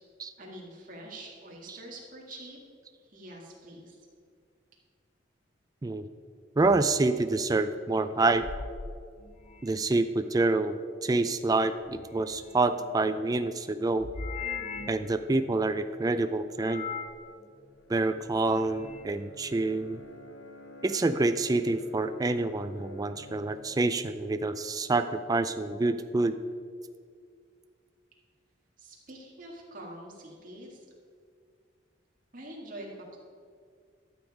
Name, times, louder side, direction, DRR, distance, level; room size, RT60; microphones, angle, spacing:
voice 1, 0.4-2.6 3.0-4.1 28.8-30.8 32.3-33.2, right 1 dB, 45° right, -2 dB, 2.1 m, -45 dB
sound 1, 6.6-6.9 8.2-9.9 11.8-12.9 14.0-15.1 16.6-17.2 18.2-19.1, left 5 dB, 35° left, 0.6 m, -40 dB
voice 2, 6.6-8.4 9.6-14.1 14.9-16.9 17.9-20.0 20.8-26.4, right 2 dB, 20° right, 10 dB, 0.3 m, -27 dB
Bowed string instrument, 17.4-25.3, left 2 dB, 65° left, 1.1 m, -51 dB
12.5 x 7.1 x 4.9 m, 2.1 s
head